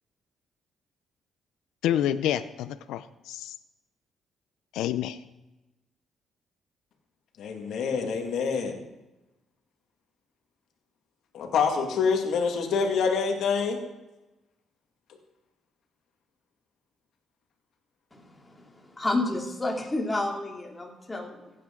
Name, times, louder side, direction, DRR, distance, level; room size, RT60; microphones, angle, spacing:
voice 1, 1.8-3.5 4.7-5.2, left 11 dB, 90° left, 13 dB, 0.5 m, -28 dB
voice 2, 7.4-8.8 11.3-13.8, left 5 dB, 75° left, 3 dB, 2.0 m, -26 dB
voice 3, 18.1-21.5, left 2 dB, 15° left, 0 dB, 2.6 m, -31 dB
15.5 x 9.2 x 3.8 m, 1.0 s
cardioid pair, 90°, 0 cm